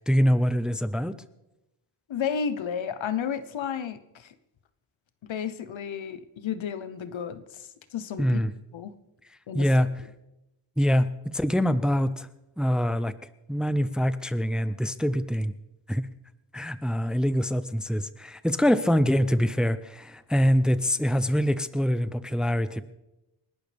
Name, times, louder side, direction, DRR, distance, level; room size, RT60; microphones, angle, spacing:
voice 1, 0.1-1.1 8.2-8.5 9.5-9.9 10.8-12.3 12.6-13.1 13.5-15.5 15.9-16.1 16.5-22.8, equal, ahead, 13 dB, 0.5 m, -24 dB
voice 2, 2.1-4.3 5.2-8.4 8.7-8.9 9.5-9.9, left 7 dB, 85° left, 12 dB, 1.1 m, -32 dB
28.5 x 12.0 x 3.5 m, 0.94 s
wide cardioid pair, 155°, 45 cm